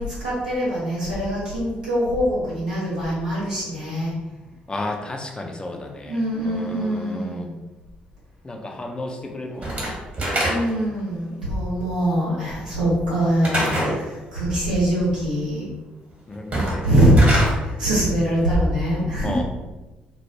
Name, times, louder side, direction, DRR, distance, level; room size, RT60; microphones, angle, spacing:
voice 1, 0.0-4.1 5.7-7.5 10.5-15.7 16.8-17.2 17.6-19.4, right 1 dB, 85° right, -8 dB, 0.8 m, -23 dB
voice 2, 4.7-7.5 8.4-9.9 16.3-16.8 19.2-19.4, left 2 dB, 20° left, 2 dB, 0.4 m, -33 dB
Slam / Wood, 9.6-10.9 13.4-14.0 16.4-17.5, right 1 dB, 35° right, 1.1 m, -24 dB
2.1 x 2.0 x 3.1 m, 1.1 s
figure-of-eight pair, 45°, 4 cm